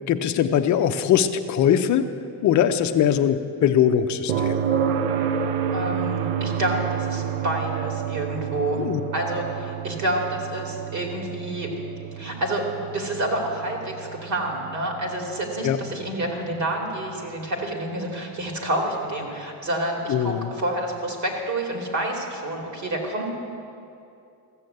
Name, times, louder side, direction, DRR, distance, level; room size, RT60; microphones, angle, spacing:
voice 1, 0.1-2.0 2.4-4.6 8.8-9.0 15.6-15.8 20.1-20.5, left 9 dB, 40° left, 8 dB, 0.7 m, -21 dB
sound 1, 4.3-18.1 20.4-20.5, right 8 dB, 75° right, 0.9 m, -30 dB
voice 2, 5.7-8.8 9.1-11.7 12.2-12.6 12.9-23.3, right 1 dB, 40° right, 1 dB, 2.7 m, -28 dB
14.5 x 7.1 x 7.9 m, 2.6 s
supercardioid pair, 120°, 46 cm